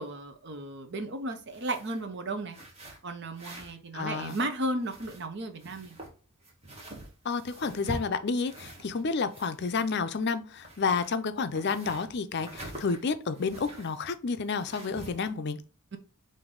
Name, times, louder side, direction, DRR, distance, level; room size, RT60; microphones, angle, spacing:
voice 1, 0.0-2.6 3.0-6.0 15.9-16.0, right 1 dB, 50° right, 0.7 m, -34 dB
sound 1, 1.4-2.1 2.5-3.8 4.0-5.3 5.6-9.0 9.3-10.2 10.5-14.0 14.5-15.3, right 1 dB, 30° right, 1.1 m, -45 dB
voice 2, 3.9-4.4 7.2-15.6, left 4 dB, 50° left, 0.5 m, -30 dB
5.2 x 2.6 x 3.7 m
head